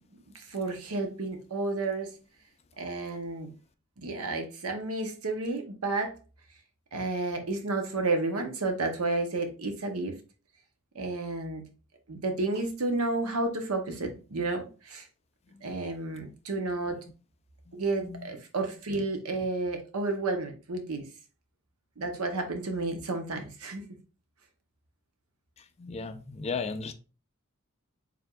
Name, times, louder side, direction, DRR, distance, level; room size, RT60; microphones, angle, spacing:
voice 1, 0.3-2.1 2.8-3.5 4.0-6.2 6.9-10.1 10.9-11.6 12.1-15.0 15.6-17.0 17.7-21.1 22.0-23.8, right 2 dB, 90° right, 0.8 m, -31 dB
voice 2, 25.8-26.9, left 4 dB, 30° left, 0.4 m, -35 dB
4.7 x 3.4 x 2.4 m
head